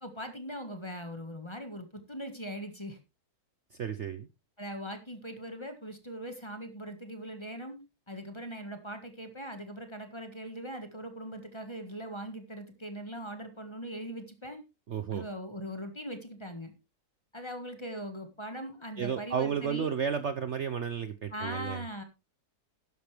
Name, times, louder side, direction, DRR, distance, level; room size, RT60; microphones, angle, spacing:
voice 1, 0.0-3.0 4.6-7.8 8.1-14.6 15.1-16.7 17.3-19.9 21.3-22.0, equal, 15° left, 7 dB, 1.6 m, -40 dB
voice 2, 3.7-4.3 14.9-15.3 19.0-21.8, right 7 dB, 55° right, 11 dB, 0.9 m, -32 dB
12.0 x 11.0 x 3.4 m, 0.27 s
omnidirectional pair, 1.7 m